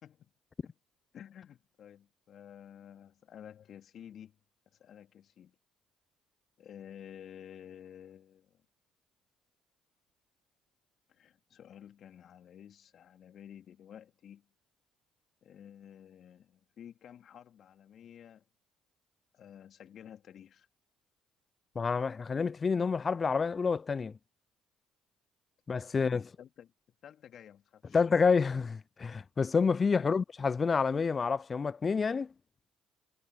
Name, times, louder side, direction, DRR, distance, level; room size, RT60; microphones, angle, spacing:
voice 1, 1.1-4.4 4.8-5.5 6.6-8.6 11.1-14.5 15.4-18.4 19.3-20.7 25.9-26.7 27.0-28.0 30.0-30.1, left 9 dB, 55° left, 3.2 m, -52 dB
voice 2, 21.8-24.1 25.7-26.3 27.9-32.3, left 5 dB, 35° left, 0.4 m, -28 dB
hypercardioid pair, 55°, 0 cm